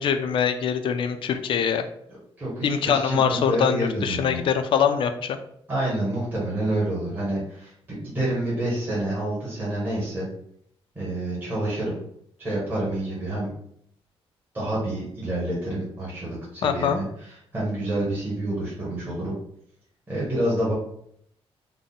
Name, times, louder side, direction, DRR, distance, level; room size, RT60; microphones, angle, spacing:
voice 1, 0.0-1.9 2.6-5.4 16.6-17.0, left 7 dB, 55° left, 8 dB, 0.4 m, -23 dB
voice 2, 2.4-4.4 5.7-10.3 10.9-12.0 12.4-13.5 14.5-19.3 20.1-20.7, right 1 dB, 20° right, -8 dB, 1.2 m, -28 dB
3.7 x 2.1 x 3.8 m, 0.70 s
wide cardioid pair, 175°, 10 cm